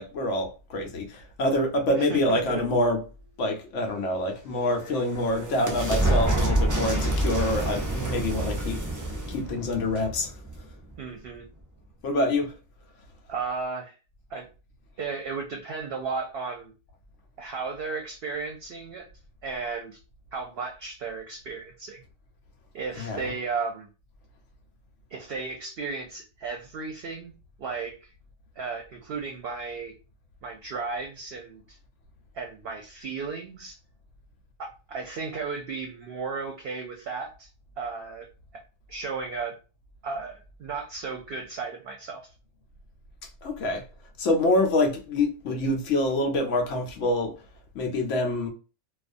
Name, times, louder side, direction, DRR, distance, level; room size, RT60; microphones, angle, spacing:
voice 1, 0.0-3.1 3.4-8.8 9.3-10.7 12.0-12.6 22.9-23.4 43.4-43.8 44.2-47.3 47.7-48.5, left 1 dB, 90° left, 1.0 m, -26 dB
voice 2, 1.9-2.6 11.0-11.4 13.3-13.9 14.3-14.5 15.0-16.7 17.4-19.1 19.4-20.0 20.3-22.0 22.7-23.9 25.1-27.3 27.6-28.1 28.6-29.9 30.4-31.8 32.3-33.8 34.6-37.5 37.8-38.3 38.9-39.5 40.0-42.2, right 4 dB, 60° right, 0.7 m, -34 dB
sound 1, 4.5-11.0, right 1 dB, 30° right, 0.3 m, -28 dB
2.4 x 2.3 x 2.5 m
omnidirectional pair, 1.2 m